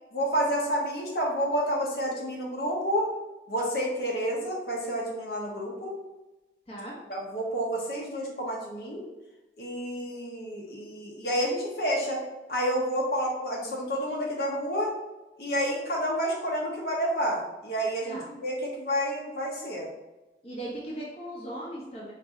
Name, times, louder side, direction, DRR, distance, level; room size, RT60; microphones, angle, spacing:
voice 1, 0.1-3.1 3.5-5.9 7.1-9.0 9.6-12.2 12.5-14.9 15.4-19.9, equal, 60° left, -2 dB, 1.0 m, -29 dB
voice 2, 6.7-7.0 18.0-18.3 20.4-22.1, right 1 dB, 35° left, -5 dB, 0.8 m, -38 dB
4.1 x 2.7 x 3.6 m, 1.0 s
head